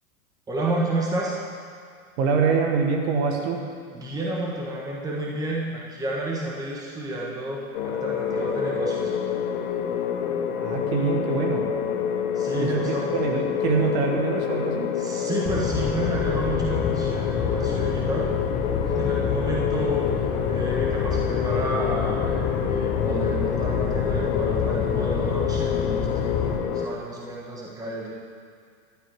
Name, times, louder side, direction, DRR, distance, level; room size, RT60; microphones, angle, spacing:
voice 1, 0.5-1.4 3.9-9.1 12.3-13.1 15.0-18.3 18.8-20.1 20.5-28.1, right 1 dB, 10° right, -3 dB, 1.3 m, -30 dB
voice 2, 2.2-3.7 10.6-11.7 12.5-14.9, right 5 dB, 50° right, 2 dB, 1.4 m, -25 dB
sound 1, 7.7-26.9, left 8 dB, 70° left, 1.2 m, -28 dB
sound 2, 15.4-26.6, left 6 dB, 15° left, 0.4 m, -28 dB
12.0 x 8.4 x 4.7 m, 2.2 s
hypercardioid pair, 140°, 43 cm